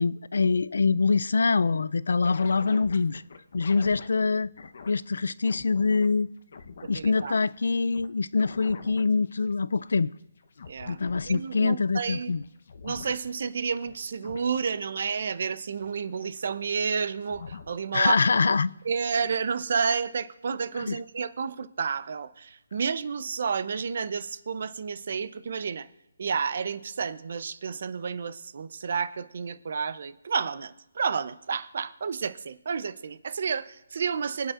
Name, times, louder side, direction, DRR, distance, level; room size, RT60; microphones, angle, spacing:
voice 1, 0.0-3.2 3.5-4.5 4.9-6.3 6.9-10.1 10.9-12.4 17.9-18.7 20.8-21.0, left 4 dB, 75° left, 0.3 m, -24 dB
sound 1, 2.2-4.9 5.2-6.1 6.4-8.1 8.4-18.1 18.4-19.3, left 5 dB, 55° left, 0.9 m, -45 dB
voice 2, 6.8-7.3 10.7-11.0 11.3-12.3 12.8-18.1 18.8-25.9 26.2-34.5, right 6 dB, 50° right, 0.6 m, -30 dB
25.5 x 9.0 x 2.5 m
hypercardioid pair, 170°, 0 cm